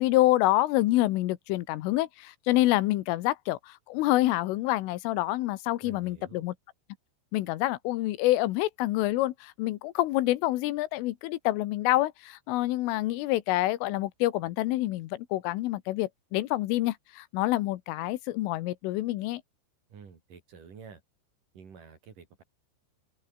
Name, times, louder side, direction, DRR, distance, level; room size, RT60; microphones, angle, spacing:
voice 1, 0.0-6.6 7.3-19.4, left 17 dB, 85° left, 3.6 m, -27 dB
voice 2, 5.8-6.5 19.9-21.0 21.5-22.4, right 6 dB, 45° right, 4.7 m, -49 dB
open air
omnidirectional pair, 5.7 m